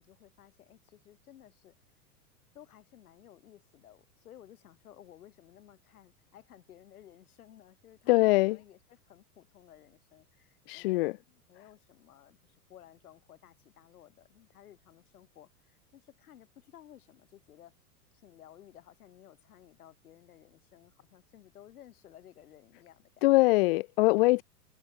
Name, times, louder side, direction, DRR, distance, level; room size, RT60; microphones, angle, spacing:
voice 1, 0.0-1.7 2.5-17.7 18.2-23.5 24.3-24.4, left 11 dB, 65° left, 5.3 m, -56 dB
voice 2, 8.1-8.6 10.7-11.2 23.2-24.4, left 21 dB, 40° left, 0.5 m, -23 dB
figure-of-eight pair, 95°, 47 cm